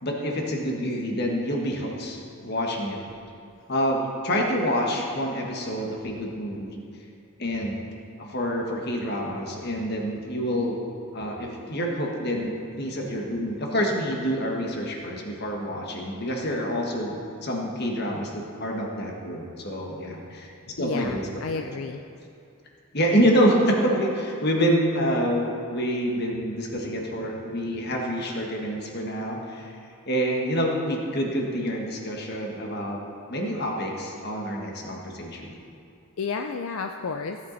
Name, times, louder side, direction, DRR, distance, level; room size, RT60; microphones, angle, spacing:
voice 1, 0.0-3.0 3.7-6.8 7.4-7.8 8.2-10.8 11.1-12.5 12.8-20.5 20.8-21.2 21.6-21.7 22.9-29.7 30.1-33.0 33.3-35.5, equal, 50° left, 0 dB, 1.5 m, -27 dB
voice 2, 20.8-22.0 36.2-37.4, left 4 dB, 70° left, 5 dB, 0.5 m, -31 dB
16.5 x 8.4 x 4.1 m, 2.5 s
head